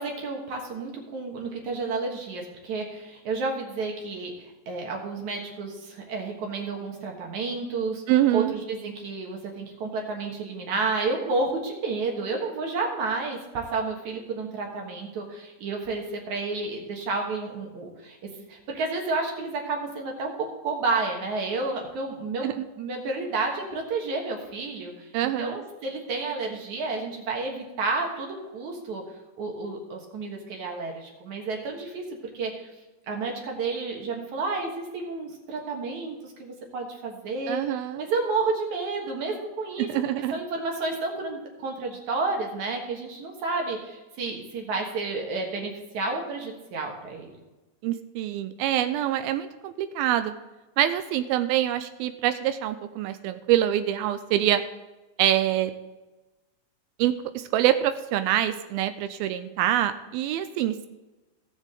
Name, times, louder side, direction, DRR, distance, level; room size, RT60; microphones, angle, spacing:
voice 1, 0.0-8.0 8.3-20.3 20.6-22.5 22.8-29.0 29.4-32.0 32.3-32.7 33.1-39.9 40.3-47.3, right 3 dB, 60° right, 1 dB, 2.5 m, -31 dB
voice 2, 8.1-8.5 22.4-22.7 25.1-25.6 37.5-38.0 39.9-40.4 47.8-50.3 50.8-54.6 55.2-55.7 57.0-60.9, right 12 dB, 85° right, 10 dB, 2.4 m, -25 dB
16.5 x 7.3 x 3.7 m, 1.1 s
omnidirectional pair, 4.3 m